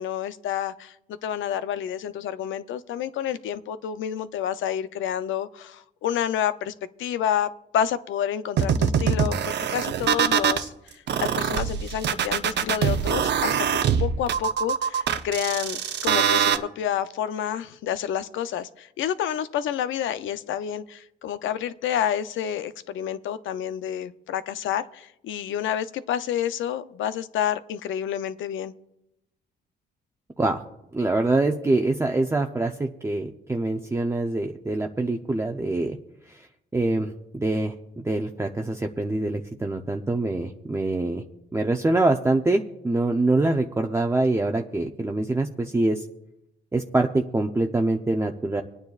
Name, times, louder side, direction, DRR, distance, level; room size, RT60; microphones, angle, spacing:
voice 1, 0.0-6.7 7.0-28.7, left 9 dB, 75° left, 13 dB, 0.6 m, -29 dB
sound 1, 8.6-10.6 11.1-16.6, right 8 dB, 60° right, 0.7 m, -23 dB
voice 2, 30.9-36.0 36.7-41.2 41.5-46.1 46.7-48.6, right 2 dB, 15° right, 3 dB, 0.7 m, -24 dB
25.5 x 9.4 x 2.4 m, 0.87 s
cardioid pair, 90°, 20 cm